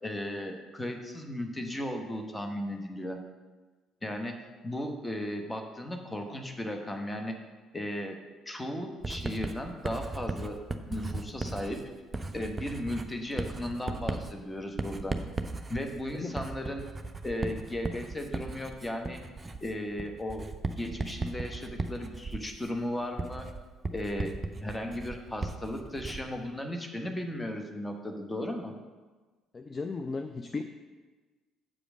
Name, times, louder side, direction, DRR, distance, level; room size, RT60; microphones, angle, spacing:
voice 1, 0.0-3.2 4.0-7.4 7.7-8.2 8.5-10.6 10.9-11.8 12.3-15.2 15.7-16.8 17.2-19.2 19.6-20.4 20.8-23.4 23.9-24.3 24.6-28.7, left 1 dB, 15° left, 4 dB, 1.2 m, -36 dB
Writing, 9.0-26.4, right 2 dB, 20° right, 0.6 m, -37 dB
voice 2, 29.5-30.6, left 4 dB, 30° left, 7 dB, 0.4 m, -35 dB
7.4 x 5.0 x 6.1 m, 1.3 s
figure-of-eight pair, 50°, 0 cm